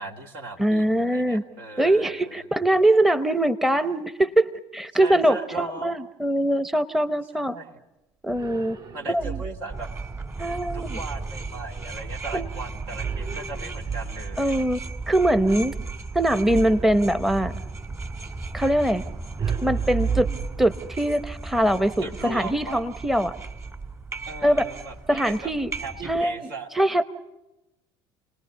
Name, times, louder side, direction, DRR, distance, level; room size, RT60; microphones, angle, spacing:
voice 1, 0.0-2.5 4.9-6.0 7.3-7.7 8.9-9.9 10.7-14.7 22.0-22.8 24.3-25.5 25.8-26.7, right 3 dB, 70° right, 1 dB, 2.5 m, -37 dB
voice 2, 0.6-1.4 1.8-7.6 8.2-8.8 9.1-9.4 10.4-11.0 12.3-12.5 14.4-14.8 15.1-15.7 16.1-17.5 18.5-19.0 19.6-20.3 20.6-23.3 24.4-24.6 25.1-25.7 26.1-26.3 26.7-27.0, right 1 dB, ahead, 12 dB, 0.8 m, -22 dB
sound 1, 8.3-9.8 13.0-14.5 16.5-17.7 19.4-21.1, right 6 dB, 40° right, 6.6 m, -31 dB
sound 2, 9.7-26.2, right 3 dB, 25° right, 1.9 m, -36 dB
29.0 x 19.0 x 6.8 m, 0.98 s
hypercardioid pair, 65°, 13 cm